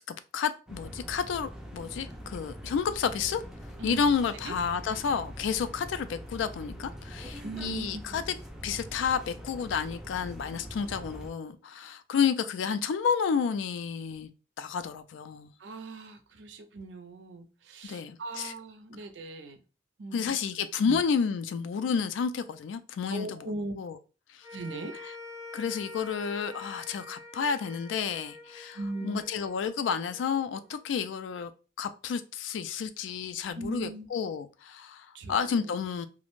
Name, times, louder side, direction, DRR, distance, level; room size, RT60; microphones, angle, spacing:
voice 1, 0.0-3.4 3.8-8.4 8.6-14.3 14.6-15.5 17.8-18.5 20.1-24.0 24.3-24.5 25.5-31.5 31.8-36.1, left 6 dB, 80° left, 0.3 m, -31 dB
sound 1, 0.7-11.3, equal, 5° right, 0.3 m, -43 dB
voice 2, 7.4-8.2 15.6-19.6 20.0-20.3 20.9-21.0 23.1-23.7 24.5-25.0 28.7-29.2 33.5-34.1 35.1-35.9, right 2 dB, 70° right, 0.5 m, -39 dB
sound 2, 24.4-30.8, left 3 dB, 25° left, 0.7 m, -46 dB
2.4 x 2.0 x 3.0 m
head